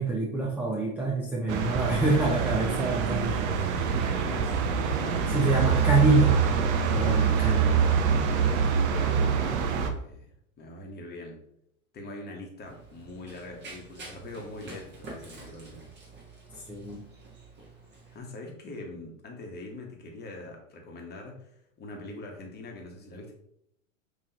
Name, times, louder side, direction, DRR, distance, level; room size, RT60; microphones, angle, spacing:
voice 1, 0.0-3.5 5.3-6.4 6.9-7.8 16.7-17.0, right 2 dB, 5° right, -3 dB, 0.4 m, -26 dB
sound 1, 1.5-9.9, right 6 dB, 55° right, 0.7 m, -25 dB
voice 2, 4.0-5.3 7.1-7.8 8.5-10.3 10.6-11.4 11.9-16.1 18.1-21.5 21.8-23.3, left 2 dB, 25° left, 1 dB, 1.1 m, -43 dB
Run, 12.6-18.2, right 3 dB, 25° right, 1.5 m, -47 dB
5.4 x 3.1 x 2.9 m, 0.74 s
hypercardioid pair, 100°, 40 cm